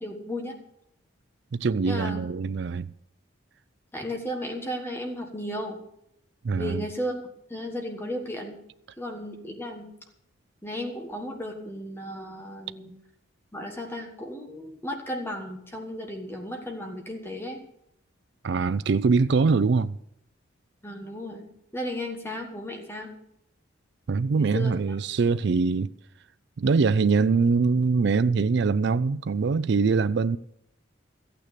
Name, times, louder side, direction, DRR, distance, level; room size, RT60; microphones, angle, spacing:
voice 1, 0.0-0.6 1.8-2.3 3.9-5.8 6.6-7.1 7.5-8.6 9.0-9.9 10.6-12.9 13.5-17.6 20.8-23.1 24.4-25.0, equal, 10° left, 1.5 m, -34 dB
voice 2, 1.5-2.9 6.4-6.9 18.4-20.0 24.1-25.9 26.6-30.4, right 4 dB, 55° right, 0.4 m, -23 dB
14.0 x 9.1 x 6.7 m
head